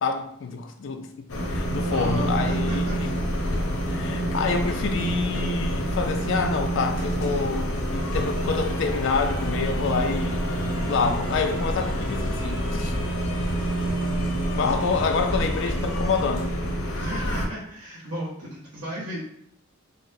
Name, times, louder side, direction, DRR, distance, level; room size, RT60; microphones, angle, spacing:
voice 1, 0.0-3.1 3.9-10.5 10.8-13.0 14.5-16.5, left 4 dB, 55° left, 6 dB, 0.3 m, -27 dB
sound 1, 1.3-17.5, equal, 85° left, 0.6 m, -27 dB
voice 2, 1.9-3.0 14.8-15.0 16.9-19.2, equal, 90° right, -6 dB, 0.8 m, -34 dB
3.9 x 2.0 x 2.6 m, 0.71 s
head